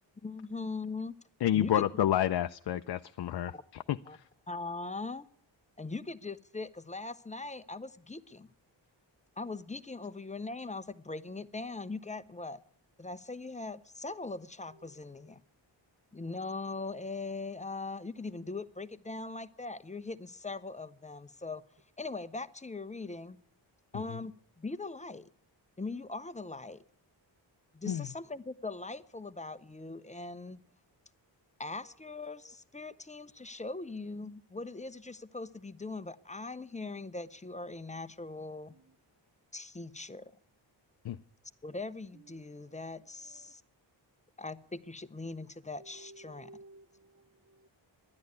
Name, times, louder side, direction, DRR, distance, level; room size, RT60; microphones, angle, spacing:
voice 1, 0.2-1.1 1.5-1.8 3.5-3.6 4.1-4.2 4.5-5.3 5.8-8.5 9.4-12.6 13.0-15.4 16.1-21.6 22.0-23.4 23.9-25.3 25.8-26.8 27.7-30.6 31.6-38.7 39.5-40.2 41.6-43.6 44.4-46.5, left 3 dB, 15° left, 0.6 m, -40 dB
voice 2, 1.4-3.5 3.9-4.2 24.1-24.2 27.9-28.1 41.0-41.2, left 11 dB, 60° left, 0.5 m, -29 dB
voice 3, 45.8-47.7, right 2 dB, 30° right, 0.7 m, -55 dB
12.5 x 10.5 x 9.7 m
wide cardioid pair, 110°, 45 cm